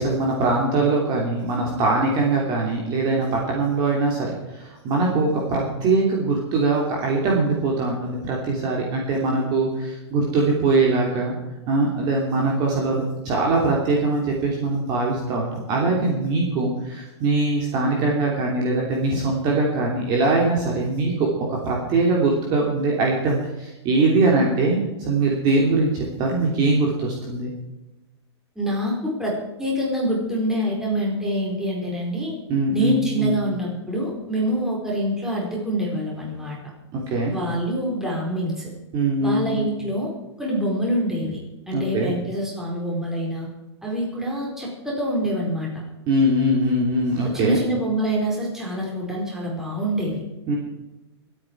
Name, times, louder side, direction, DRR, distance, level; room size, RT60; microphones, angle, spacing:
voice 1, 0.0-11.3 11.7-27.5 32.5-33.4 36.9-37.3 38.9-39.7 41.7-42.1 46.1-47.6 50.5-50.6, right 2 dB, 30° right, -2 dB, 3.0 m, -22 dB
voice 2, 28.5-32.3 32.7-36.6 37.3-38.7 39.2-40.1 40.4-41.4 41.7-43.5 43.8-45.7 47.3-50.2, equal, 5° right, -3 dB, 4.6 m, -25 dB
25.5 x 9.0 x 4.7 m, 1.0 s
hypercardioid pair, 155°, 14 cm